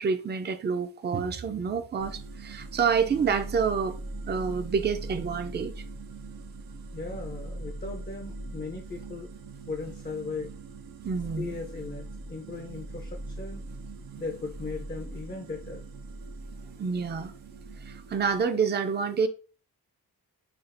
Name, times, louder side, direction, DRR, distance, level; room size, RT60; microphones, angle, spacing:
voice 1, 0.0-4.0 4.3-5.7 11.0-11.5 16.8-17.3 17.9-19.3, right 6 dB, 30° right, 0.5 m, -28 dB
sound 1, 2.0-18.4, right 2 dB, 75° right, 0.6 m, -41 dB
voice 2, 6.9-9.3 9.7-10.5 11.4-13.6 14.2-15.9, left 4 dB, 25° left, 0.5 m, -38 dB
5.7 x 2.3 x 2.6 m
wide cardioid pair, 110°, 36 cm